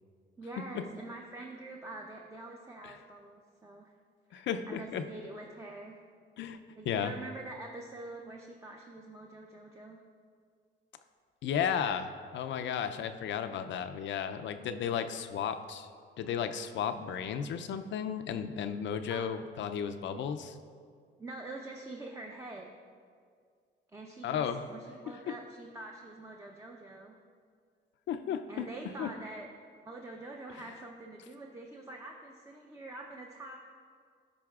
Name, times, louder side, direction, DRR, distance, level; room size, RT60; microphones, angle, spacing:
voice 1, 0.4-3.9 4.3-6.0 6.8-10.0 19.1-19.4 21.2-22.7 23.9-27.1 28.5-29.5 29.8-33.6, right 2 dB, 15° right, 0 dB, 0.6 m, -45 dB
voice 2, 4.3-5.0 6.4-6.6 6.9-7.1 11.4-15.9 16.2-20.5 24.2-24.6 25.3-25.4 28.1-28.7 29.0-29.1, left 8 dB, 70° left, 9 dB, 0.5 m, -34 dB
13.5 x 5.3 x 2.4 m, 2.1 s
cardioid pair, 90°, 20 cm